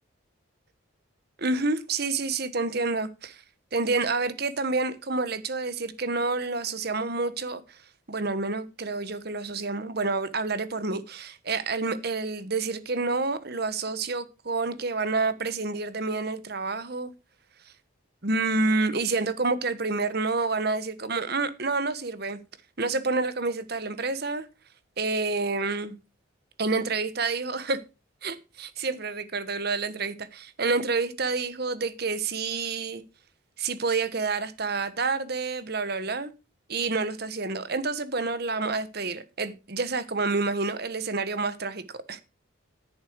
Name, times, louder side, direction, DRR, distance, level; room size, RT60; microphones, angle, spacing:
voice 1, 1.4-3.4 3.7-7.8 8.1-17.1 18.2-22.4 22.8-24.5 25.0-25.9 26.6-27.8 28.2-33.0 33.6-36.3 36.7-41.8 42.1-42.2, right 3 dB, 50° right, 1.2 m, -28 dB
10.5 x 8.7 x 4.6 m
head